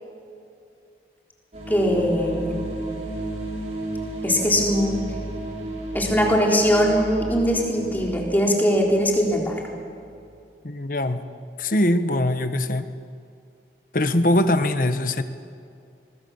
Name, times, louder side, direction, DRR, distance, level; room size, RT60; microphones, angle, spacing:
sound 1, 1.5-10.3, right 1 dB, 40° right, 4.2 m, -33 dB
voice 1, 1.7-2.5 4.2-5.0 5.9-9.5, equal, 10° left, -2 dB, 3.8 m, -21 dB
voice 2, 10.6-11.3 11.6-12.9 13.9-15.2, left 1 dB, 50° left, 10 dB, 1.2 m, -22 dB
22.0 x 21.0 x 7.1 m, 2.4 s
head